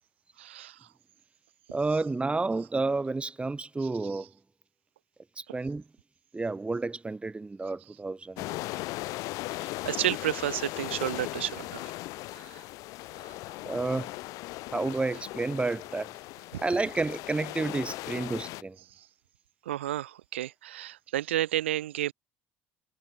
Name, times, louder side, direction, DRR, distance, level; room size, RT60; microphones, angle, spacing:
voice 1, 0.4-0.9 4.1-4.2 9.5-11.9 12.3-12.6 13.2-13.4 16.5-16.6 19.0-19.1 19.7-22.1, right 13 dB, 85° right, 5.3 m, -32 dB
voice 2, 1.7-4.3 5.4-5.8 6.3-8.6 13.7-14.1 14.7-16.1 16.6-18.8, right 3 dB, 20° right, 2.7 m, -30 dB
sound 1, 8.4-18.6, left 20 dB, 65° left, 2.4 m, -38 dB
hypercardioid pair, 65°, 6 cm